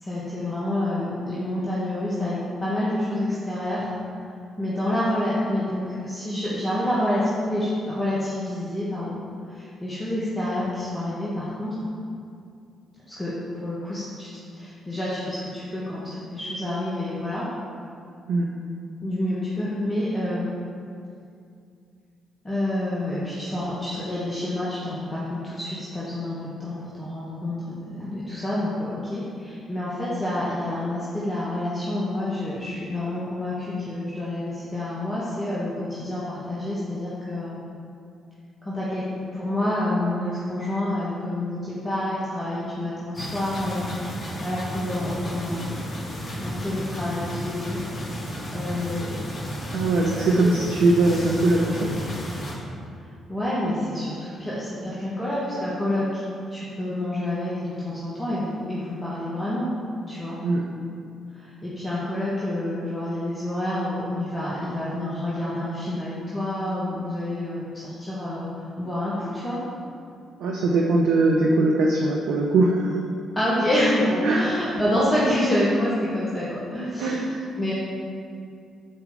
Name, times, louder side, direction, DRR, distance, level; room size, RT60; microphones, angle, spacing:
voice 1, 0.0-3.9 4.6-9.2 9.5-11.7 13.1-14.3 14.5-17.4 19.0-20.5 22.4-37.5 38.6-39.1 39.3-43.9 44.4-45.8 46.4-47.8 48.5-49.2 49.7-50.1 50.4-50.6 53.3-56.2 56.5-59.7 60.1-60.4 61.3-69.6 73.3-77.2 77.6-77.7, left 1 dB, 20° left, -9 dB, 1.3 m, -28 dB
sound 1, 43.1-52.5, equal, 40° left, 1.1 m, -33 dB
voice 2, 49.7-51.9 60.4-60.6 70.4-72.9 74.2-74.5 77.0-77.2, right 2 dB, 60° right, -1 dB, 0.5 m, -21 dB
7.3 x 4.4 x 3.6 m, 2.4 s
figure-of-eight pair, 40°, 0 cm